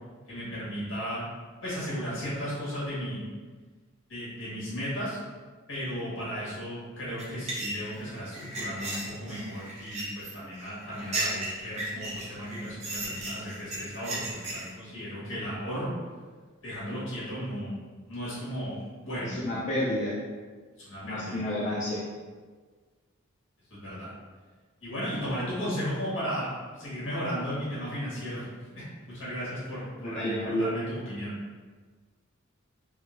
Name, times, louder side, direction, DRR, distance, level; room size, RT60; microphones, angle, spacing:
voice 1, 0.3-1.2 1.6-3.2 4.1-5.2 5.7-15.9 16.6-17.7 18.1-19.3 20.8-21.7 23.8-24.1 24.8-28.4 28.7-31.4, equal, 65° left, -9 dB, 1.5 m, -35 dB
sound 1, 7.2-14.7, right 2 dB, 30° right, 0.5 m, -36 dB
voice 2, 19.2-20.1 21.0-22.0 30.0-30.7, left 1 dB, 35° left, -8 dB, 0.4 m, -30 dB
3.6 x 2.0 x 2.6 m, 1.5 s
head